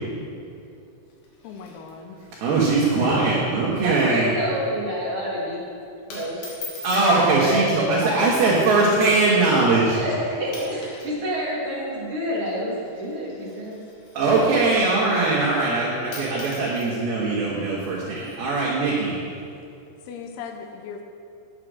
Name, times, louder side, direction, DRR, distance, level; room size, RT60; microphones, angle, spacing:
sound 1, 1.1-2.4 2.6-2.7 3.0-3.3 3.7-4.0 4.3-4.6 5.4-5.6 6.1-7.1 8.1-8.4 9.1-9.2 9.9-10.1 10.4-11.2 11.4-14.9 15.8-15.9 16.1-18.4, left 2 dB, 65° left, 3.5 m, -43 dB
voice 1, 1.4-2.2 20.1-21.0, left 6 dB, 85° left, 4 dB, 2.8 m, -38 dB
voice 2, 2.4-4.3 6.8-10.0 14.1-19.2, right 3 dB, 70° right, -6 dB, 3.3 m, -21 dB
voice 3, 3.8-5.7 6.1-6.5 7.4-8.2 9.9-13.9, equal, 45° right, -5 dB, 2.1 m, -28 dB
9.6 x 8.6 x 6.3 m, 2.6 s
omnidirectional pair, 4.7 m